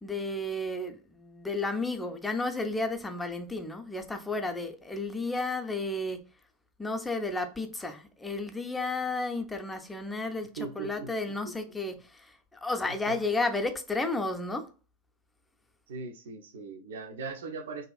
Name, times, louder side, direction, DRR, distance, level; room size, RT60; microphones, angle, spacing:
voice 1, 0.0-6.2 6.8-14.7, left 2 dB, 10° left, 0.4 m, -32 dB
voice 2, 10.6-11.1 11.4-11.5 13.1-13.2 15.9-17.9, right 4 dB, 60° right, 0.4 m, -39 dB
2.5 x 2.3 x 2.3 m
figure-of-eight pair, 90°, 0 cm